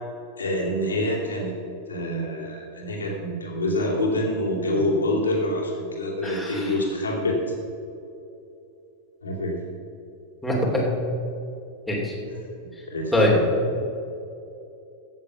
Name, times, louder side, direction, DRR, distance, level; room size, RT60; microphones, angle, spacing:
voice 1, 0.4-1.6 1.9-7.4 9.2-9.5 12.9-13.4, left 1 dB, 75° left, -3 dB, 2.8 m, -26 dB
voice 2, 6.2-6.7 10.4-10.9 11.9-12.2 13.1-13.4, left 1 dB, 5° left, -4 dB, 3.0 m, -23 dB
15.0 x 7.4 x 5.9 m, 2.7 s
figure-of-eight pair, 90°, 0 cm